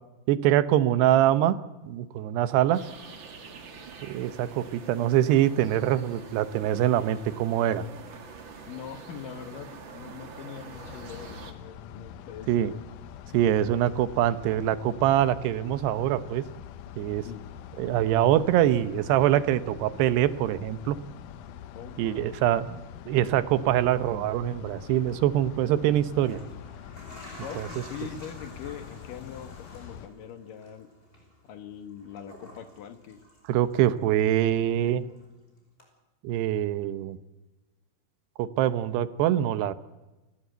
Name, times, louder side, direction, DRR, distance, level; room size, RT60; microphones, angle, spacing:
voice 1, 0.3-1.6 1.8-2.8 4.0-7.8 12.5-12.7 13.3-16.4 17.0-17.3 17.8-21.0 22.0-26.4 27.6-27.7 33.5-35.1 36.2-37.2 38.4-39.7, right 12 dB, 80° right, 14 dB, 3.0 m, -24 dB
sound 1, 2.7-11.5, right 4 dB, 45° right, 1.7 m, -45 dB
voice 2, 8.7-12.7 17.3-17.5 21.8-22.4 27.4-30.9 31.5-33.2, left 8 dB, 65° left, 10 dB, 2.5 m, -42 dB
sound 2, 10.7-30.1, left 9 dB, 80° left, 1.8 m, -44 dB
sound 3, 25.1-25.2 26.0-34.0 34.3-35.3 35.8-35.9, equal, 15° left, 5.1 m, -50 dB
28.5 x 14.5 x 8.0 m, 1.1 s
omnidirectional pair, 4.8 m